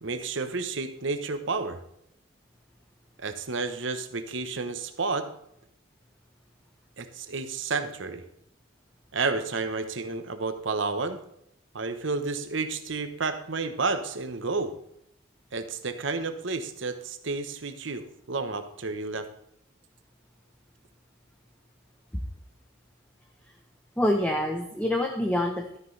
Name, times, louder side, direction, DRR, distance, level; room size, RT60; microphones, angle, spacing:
voice 1, 0.0-1.8 3.2-5.3 7.0-8.2 9.1-11.2 11.7-14.7 15.5-19.3, right 3 dB, 75° right, 9 dB, 1.0 m, -31 dB
voice 2, 24.0-25.8, left 1 dB, 5° left, 2 dB, 0.7 m, -26 dB
13.0 x 9.5 x 3.3 m, 0.76 s
head